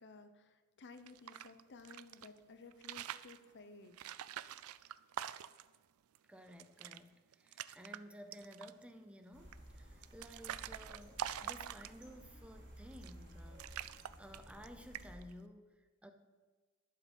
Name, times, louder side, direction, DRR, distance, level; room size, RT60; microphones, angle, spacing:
voice 1, 0.0-4.0, left 3 dB, 55° left, 10 dB, 0.7 m, -56 dB
sound 1, 0.9-2.3 2.7-3.4 3.9-5.8 6.1-6.2 6.5-7.0 7.3-8.0 8.3-8.8 9.5-12.2 12.9-13.3 13.6-14.7 14.9-15.3, right 10 dB, 75° right, 0.4 m, -45 dB
voice 2, 6.3-13.9 14.2-16.1, equal, 5° right, 7 dB, 0.6 m, -55 dB
sound 2, 9.3-15.2, equal, 55° right, 2.9 m, -55 dB
11.5 x 7.5 x 5.4 m, 1.3 s
head